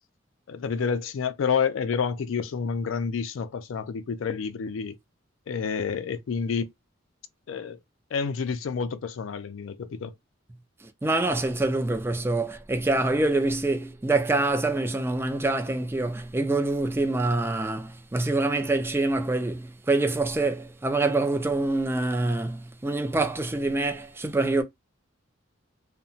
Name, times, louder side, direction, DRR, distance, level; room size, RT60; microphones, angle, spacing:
voice 1, 0.5-5.0 5.5-6.7 7.5-7.8 8.1-10.1, left 6 dB, 85° left, 0.4 m, -29 dB
voice 2, 10.8-24.6, right 2 dB, 10° right, 0.3 m, -25 dB
2.8 x 2.1 x 2.7 m
head